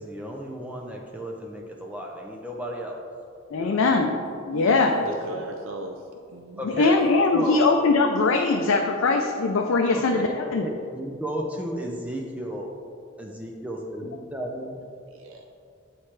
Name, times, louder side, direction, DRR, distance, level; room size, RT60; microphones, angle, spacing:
voice 1, 0.0-3.0 3.6-4.0 5.0-5.4 6.6-7.0 7.3-7.7 9.9-12.7 13.2-14.8, equal, 5° right, 0 dB, 0.4 m, -34 dB
voice 2, 3.5-4.2 4.5-4.9 6.6-10.6, left 3 dB, 90° left, 2 dB, 0.4 m, -21 dB
voice 3, 4.5-6.0 6.3-6.6 15.1-15.4, right 2 dB, 70° right, 3 dB, 0.4 m, -37 dB
8.2 x 4.3 x 3.2 m, 2.3 s
head